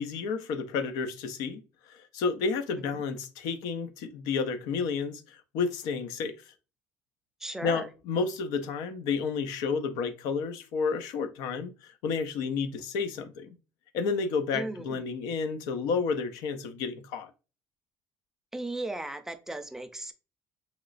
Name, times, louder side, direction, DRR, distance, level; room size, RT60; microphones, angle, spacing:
voice 1, 0.0-1.6 1.9-6.5 7.6-13.5 13.9-17.3, left 5 dB, 90° left, 0.5 m, -31 dB
voice 2, 7.4-7.9 14.5-15.0 18.5-20.1, right 2 dB, 5° right, 0.5 m, -36 dB
3.0 x 2.9 x 2.4 m
cardioid pair, 105°, 6 cm